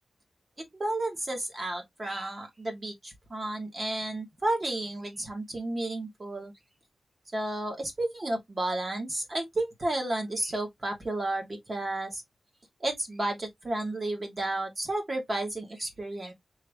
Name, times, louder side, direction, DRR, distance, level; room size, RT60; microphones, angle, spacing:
voice 1, 0.6-6.5 7.3-12.2 12.8-16.3, right 2 dB, 40° right, 2.4 m, -32 dB
4.7 x 3.4 x 3.2 m
cardioid pair, 60°, 0 cm